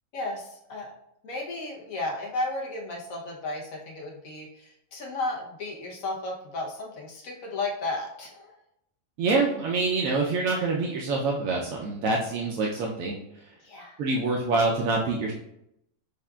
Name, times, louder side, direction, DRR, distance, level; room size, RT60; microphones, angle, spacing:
voice 1, 0.1-0.9 1.2-8.6 13.6-14.0, left 2 dB, 80° left, -2 dB, 1.3 m, -34 dB
voice 2, 9.2-13.2 14.0-15.3, right 3 dB, 80° right, -2 dB, 1.0 m, -26 dB
6.4 x 2.4 x 2.3 m, 0.79 s
omnidirectional pair, 1.4 m